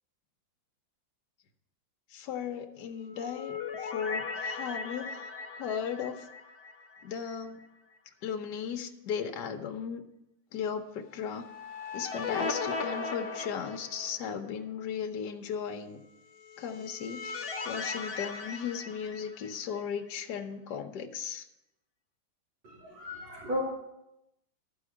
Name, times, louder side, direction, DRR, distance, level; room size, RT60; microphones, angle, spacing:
voice 1, 2.1-5.2 5.6-6.2 7.0-7.6 8.2-10.0 10.5-11.4 11.9-16.0 16.6-21.5, left 7 dB, 65° left, 5 dB, 1.4 m, -36 dB
sound 1, 3.0-7.3 7.6-7.7 11.3-14.4 16.4-19.8, left 4 dB, 50° left, 0.7 m, -38 dB
voice 2, 22.6-23.6, left 1 dB, 85° right, -9 dB, 3.7 m, -35 dB
13.0 x 4.8 x 7.8 m, 0.87 s
omnidirectional pair, 2.0 m